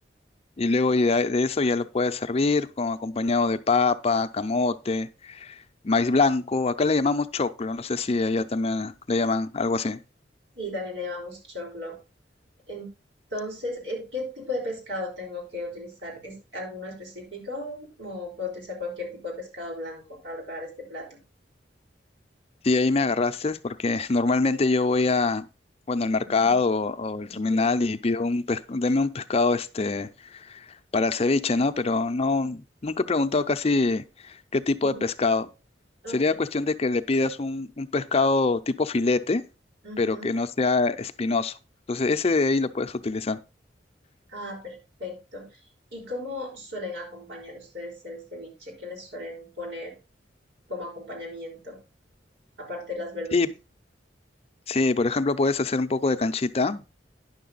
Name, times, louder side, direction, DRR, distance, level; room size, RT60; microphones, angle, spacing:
voice 1, 0.6-10.0 22.6-25.5 25.9-30.7 30.9-35.5 36.1-39.4 40.0-41.6 41.9-43.4 53.3-53.5 54.7-56.9, left 3 dB, 35° left, 0.5 m, -24 dB
voice 2, 10.5-12.0 12.7-12.9 13.3-21.2 26.2-26.6 27.3-27.6 34.8-35.1 36.0-36.2 39.8-40.3 44.3-45.5 45.9-50.0 50.7-51.8 52.6-53.5, left 2 dB, 90° right, 5.0 m, -36 dB
10.0 x 6.6 x 3.9 m
head